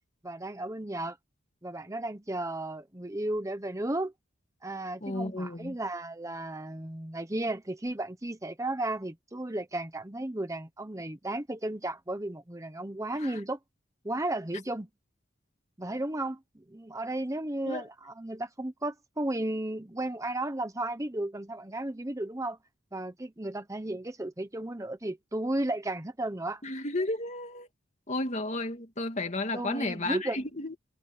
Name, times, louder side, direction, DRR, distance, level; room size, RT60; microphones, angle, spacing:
voice 1, 0.2-1.2 1.6-4.1 4.6-13.6 14.0-14.9 15.8-22.6 22.9-26.6 29.5-30.4, right 1 dB, 15° right, 1.1 m, -34 dB
voice 2, 5.0-5.8 13.2-13.4 17.7-17.8 26.6-27.7 28.1-30.7, left 2 dB, 40° left, 2.3 m, -33 dB
head